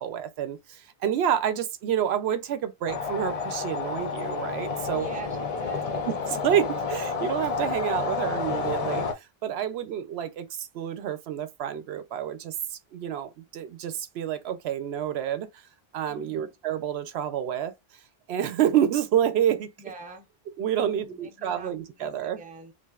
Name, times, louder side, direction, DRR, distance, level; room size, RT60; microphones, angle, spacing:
voice 1, 0.0-5.1 6.1-15.5 15.9-17.7 18.3-19.7 20.6-22.4, right 10 dB, 85° right, 0.8 m, -28 dB
sound 1, 2.9-9.1, left 4 dB, 50° left, 0.5 m, -30 dB
voice 2, 4.9-6.0 16.1-16.5 19.8-20.3 20.8-22.7, right 3 dB, 10° right, 0.4 m, -44 dB
3.3 x 2.5 x 2.3 m
omnidirectional pair, 1.0 m